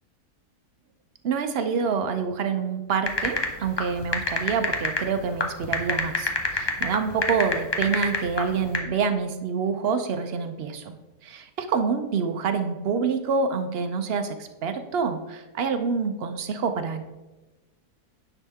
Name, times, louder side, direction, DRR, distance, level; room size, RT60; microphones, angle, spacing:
voice 1, 1.2-11.0 11.2-17.0, right 5 dB, 60° right, 7 dB, 0.6 m, -27 dB
sound 1, 3.1-8.8, left 3 dB, 30° left, 0.4 m, -26 dB
9.8 x 5.9 x 3.5 m, 1.1 s
omnidirectional pair, 1.7 m